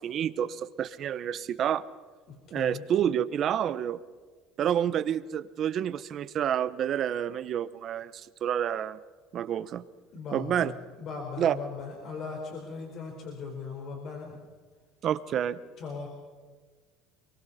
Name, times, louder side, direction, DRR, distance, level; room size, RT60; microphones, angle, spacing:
voice 1, 0.0-1.8 2.5-4.0 4.6-9.0 9.3-9.8 10.3-10.7 11.4-11.5 15.0-15.6, right 9 dB, 40° right, 14 dB, 1.0 m, -29 dB
voice 2, 2.5-2.8 10.1-14.4 15.8-16.1, left 5 dB, 45° left, 1 dB, 4.7 m, -38 dB
28.0 x 23.0 x 4.3 m, 1.5 s
cardioid pair, 140°, 0 cm